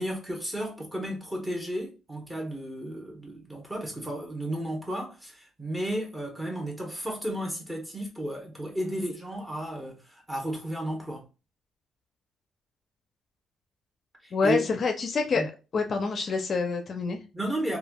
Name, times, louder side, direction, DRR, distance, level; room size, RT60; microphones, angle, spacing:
voice 1, 0.0-11.2 14.2-14.7 15.3-15.5 17.3-17.8, right 1 dB, 10° right, 1.1 m, -33 dB
voice 2, 14.3-15.4 15.7-17.2, left 4 dB, 50° left, 0.5 m, -26 dB
3.3 x 2.3 x 2.3 m
cardioid pair, 90°, 0 cm